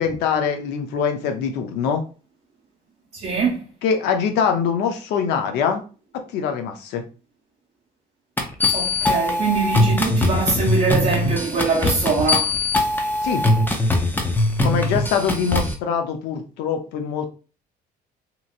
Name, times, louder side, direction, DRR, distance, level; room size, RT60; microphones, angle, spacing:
voice 1, 0.0-2.0 3.8-5.8 6.3-7.0 13.2-13.4 14.6-17.3, left 6 dB, 90° left, 0.6 m, -23 dB
voice 2, 3.1-3.7 8.7-12.6, right 4 dB, 45° right, 0.9 m, -23 dB
sound 1, 8.4-15.7, left 2 dB, 10° left, 0.5 m, -21 dB
2.9 x 2.8 x 2.5 m
cardioid pair, 110°, 17 cm